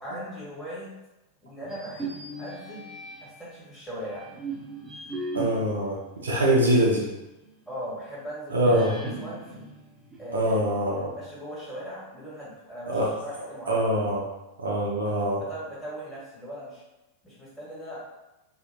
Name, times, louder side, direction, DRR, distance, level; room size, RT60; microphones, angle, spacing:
voice 1, 0.0-0.9 1.4-2.9 3.2-4.3 7.7-9.6 10.2-13.9 15.3-16.8 17.2-18.0, equal, 10° left, -9 dB, 1.4 m, -39 dB
sound 1, 1.6-3.5 4.1-7.1 7.4-7.5 8.6-10.7, right 1 dB, 15° right, 0.5 m, -37 dB
voice 2, 5.3-6.0 6.2-7.1 8.5-9.0 10.3-11.1 12.9-13.1 13.7-14.2 14.6-15.4, right 1 dB, 70° right, -3 dB, 0.6 m, -23 dB
2.7 x 2.4 x 2.5 m, 0.99 s
figure-of-eight pair, 90°, 0 cm